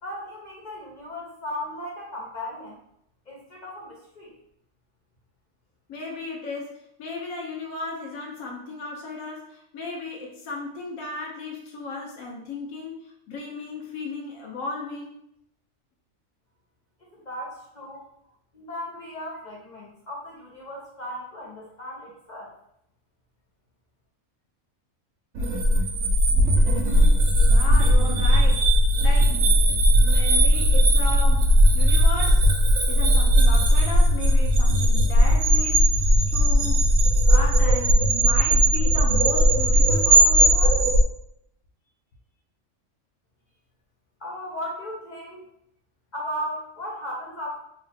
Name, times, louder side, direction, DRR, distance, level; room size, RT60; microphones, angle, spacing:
voice 1, 0.0-2.8 3.3-4.4 17.0-18.1 18.5-22.5 44.2-45.5 46.1-47.6, equal, 50° left, -3 dB, 0.6 m, -36 dB
voice 2, 5.9-15.1 27.5-29.4 30.0-32.5 32.9-36.8 37.2-40.9, left 3 dB, 85° left, -1 dB, 1.1 m, -35 dB
sound 1, 25.4-41.0, equal, 70° right, 0.9 m, -18 dB
2.9 x 2.0 x 4.1 m, 0.74 s
omnidirectional pair, 1.4 m